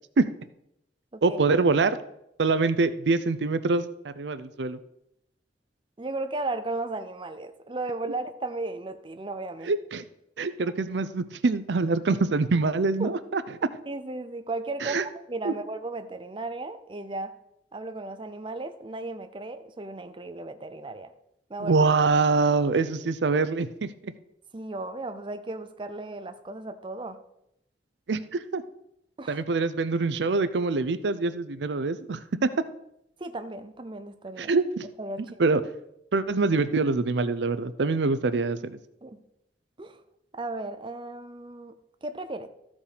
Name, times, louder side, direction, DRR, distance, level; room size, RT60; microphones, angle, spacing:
voice 1, 1.2-2.0 2.4-4.8 9.6-10.0 10.4-13.4 14.8-15.0 15.4-15.5 21.6-24.1 28.1-28.6 29.3-32.5 34.4-34.9 35.4-35.6 36.1-38.8, right 3 dB, 80° right, 13 dB, 0.5 m, -25 dB
voice 2, 6.0-9.7 13.0-13.1 13.9-17.4 17.7-21.1 21.5-21.8 24.5-27.2 29.2-29.4 33.2-34.5 35.0-35.6 39.0-39.2 39.8-40.0 40.3-42.5, right 2 dB, 30° right, 9 dB, 0.6 m, -35 dB
13.5 x 5.2 x 5.0 m, 0.80 s
head